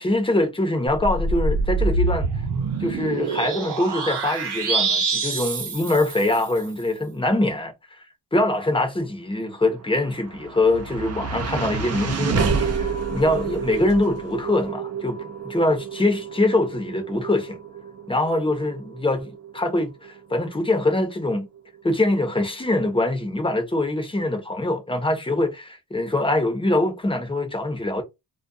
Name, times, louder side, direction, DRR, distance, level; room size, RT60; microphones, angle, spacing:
voice 1, 0.0-2.3 2.8-8.0 8.3-15.2 15.4-17.6 18.1-21.5 21.8-28.0, left 2 dB, 10° left, 0.7 m, -23 dB
sound 1, 0.9-6.7, right 3 dB, 60° right, 0.8 m, -25 dB
sound 2, 9.8-22.1, right 5 dB, 35° right, 0.4 m, -30 dB
2.3 x 2.2 x 2.5 m
wide cardioid pair, 125°, 44 cm